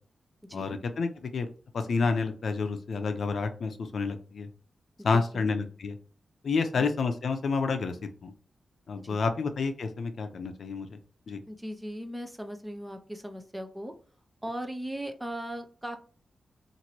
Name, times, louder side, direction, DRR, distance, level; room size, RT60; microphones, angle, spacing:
voice 1, 0.5-1.5 1.7-4.5 5.0-5.9 6.4-8.0 8.2-8.3 8.9-11.0 11.3-11.4, left 4 dB, 65° left, 7 dB, 0.5 m, -29 dB
voice 2, 5.1-5.5 6.6-6.9 9.0-9.4 11.5-13.9 14.4-16.0, equal, 10° right, 5 dB, 0.5 m, -38 dB
2.9 x 2.5 x 2.8 m, 0.40 s
wide cardioid pair, 105°, 0 cm